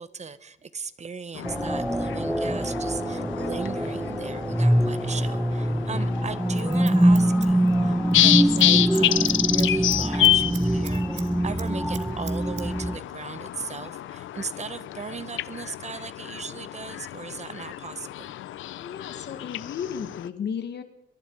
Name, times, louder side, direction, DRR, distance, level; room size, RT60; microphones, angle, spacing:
voice 1, 0.0-18.3, right 5 dB, 35° right, 14 dB, 1.4 m, -38 dB
sound 1, 1.3-20.3, left 13 dB, 80° left, 0.9 m, -29 dB
sound 2, 1.4-13.0, right 1 dB, 5° right, 1.0 m, -24 dB
Scissors, 6.2-8.2 8.5-8.7 9.0-11.3 11.6-12.7 12.9-13.0, right 8 dB, 60° right, 2.4 m, -42 dB
voice 2, 18.7-20.8, left 7 dB, 60° left, 8 dB, 2.0 m, -34 dB
23.5 x 23.0 x 4.9 m, 0.83 s
cardioid pair, 90°, 20 cm